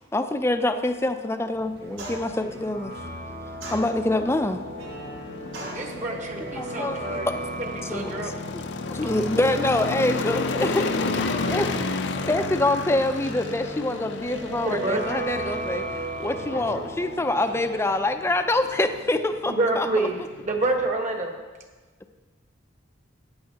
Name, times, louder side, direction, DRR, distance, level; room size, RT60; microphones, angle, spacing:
voice 1, 0.1-2.9 3.7-4.6 6.5-7.3 7.8-8.3 8.9-11.0 11.5-11.7 12.2-20.1, left 2 dB, 15° left, 8 dB, 0.4 m, -25 dB
sound 1, 1.6-20.9, left 3 dB, 60° left, 0.5 m, -34 dB
sound 2, 1.6-17.8, right 1 dB, 55° right, 1.9 m, -37 dB
sound 3, 2.0-2.4 3.6-4.3 5.5-5.9, right 1 dB, 85° right, 3.1 m, -37 dB
voice 2, 5.7-7.3 7.6-8.4 14.6-15.2 19.5-20.2 20.4-21.3, right 2 dB, 40° right, 3 dB, 1.2 m, -27 dB
voice 3, 11.0-11.9 16.3-16.9, left 2 dB, 85° left, 2 dB, 1.4 m, -36 dB
14.5 x 9.6 x 2.8 m, 1.3 s
head